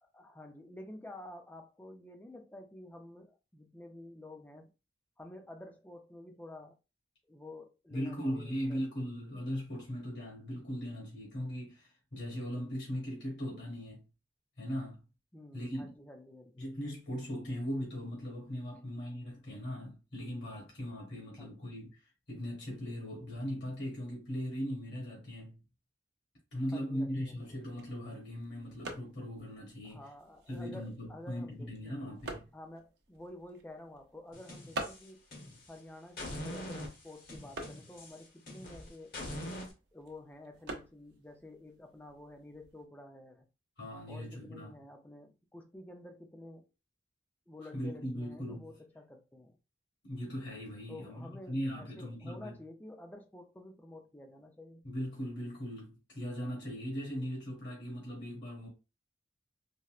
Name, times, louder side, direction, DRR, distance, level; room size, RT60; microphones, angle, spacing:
voice 1, 0.0-4.7 5.2-6.8 7.3-8.8 15.3-16.6 21.4-21.6 26.7-27.6 29.8-32.2 32.5-35.2 35.7-39.1 39.9-43.5 44.1-46.7 47.5-49.6 50.9-54.9, left 1 dB, 10° left, 0.4 m, -50 dB
voice 2, 7.9-14.0 14.6-15.0 15.5-15.9 16.6-21.9 22.3-25.6 26.5-30.1 30.5-32.4 43.8-44.7 47.7-48.7 50.0-52.6 54.8-58.7, equal, 75° left, 1.7 m, -39 dB
sound 1, 27.3-42.8, right 2 dB, 65° right, 0.6 m, -49 dB
sound 2, 34.3-35.7 36.2-39.7, left 1 dB, 50° left, 1.1 m, -43 dB
4.2 x 2.1 x 2.4 m
head